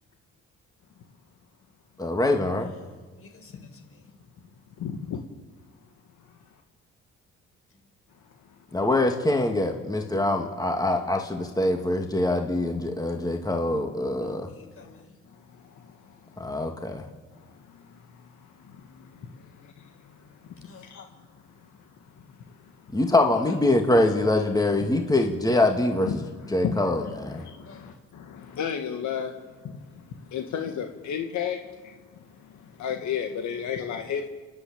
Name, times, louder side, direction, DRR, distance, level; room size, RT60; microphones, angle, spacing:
voice 1, 2.0-2.7 8.7-14.5 16.4-17.0 22.9-26.1 26.5-27.4, left 2 dB, 10° left, 2.4 m, -24 dB
voice 2, 2.8-4.0 14.5-15.0 20.6-20.9 27.7-27.9, left 4 dB, 50° left, 5.4 m, -52 dB
voice 3, 4.8-5.2 8.5-8.8 13.0-13.1 14.8-16.6 17.3-23.0 26.1-34.3, left 7 dB, 70° left, 1.9 m, -35 dB
29.5 x 11.5 x 8.9 m
cardioid pair, 90°, 30 cm